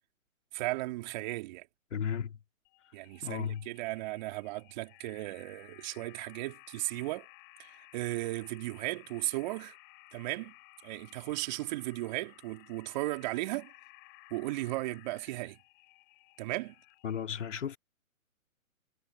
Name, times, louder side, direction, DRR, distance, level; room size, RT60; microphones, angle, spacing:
voice 1, 0.5-1.7 2.9-7.3 7.6-9.8 10.1-10.5 10.8-13.7 14.3-15.6 16.4-16.7, right 19 dB, 30° right, 3.5 m, -36 dB
voice 2, 1.9-2.4 3.2-3.7 17.0-17.8, left 8 dB, 60° left, 3.0 m, -34 dB
sound 1, 2.6-17.2, left 29 dB, 25° left, 6.6 m, -57 dB
hypercardioid pair, 145°, 42 cm